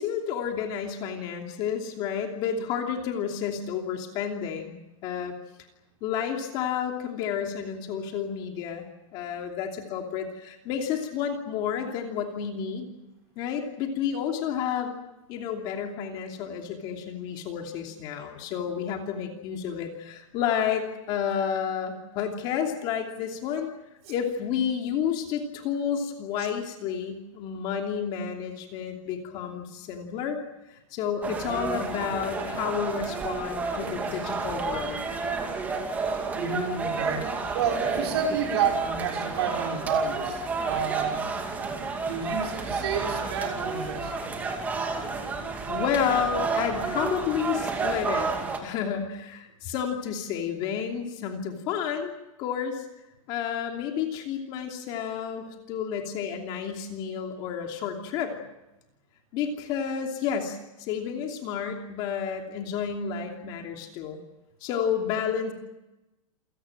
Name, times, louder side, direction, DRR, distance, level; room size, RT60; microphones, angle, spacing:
voice 1, 0.0-4.8 5.0-5.3 6.0-8.9 9.1-12.9 13.4-14.9 15.3-23.7 24.1-30.4 30.7-35.0 45.7-48.3 48.6-52.1 52.4-52.8 53.3-58.3 59.3-64.2 64.6-65.5, left 8 dB, 25° left, 3 dB, 2.9 m, -30 dB
sound 1, 31.2-48.6, right 4 dB, 10° right, 2.5 m, -31 dB
voice 2, 36.3-37.3 37.5-41.3 42.1-44.1, right 6 dB, 50° right, 2 dB, 5.7 m, -29 dB
28.5 x 17.5 x 9.1 m, 0.95 s
supercardioid pair, 180°, 17 cm